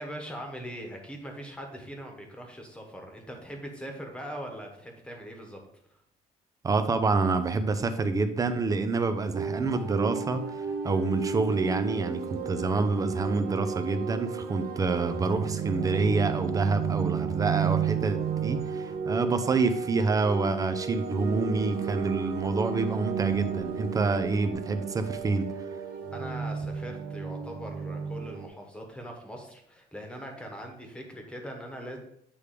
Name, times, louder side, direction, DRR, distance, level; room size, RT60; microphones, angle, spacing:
voice 1, 0.0-5.6 26.1-32.0, equal, 5° left, 2 dB, 1.3 m, -41 dB
voice 2, 6.6-25.5, right 3 dB, 20° right, 9 dB, 0.6 m, -27 dB
sound 1, 9.3-28.5, right 6 dB, 75° right, 1.0 m, -32 dB
8.5 x 3.4 x 4.9 m, 0.72 s
cardioid pair, 150°, 15 cm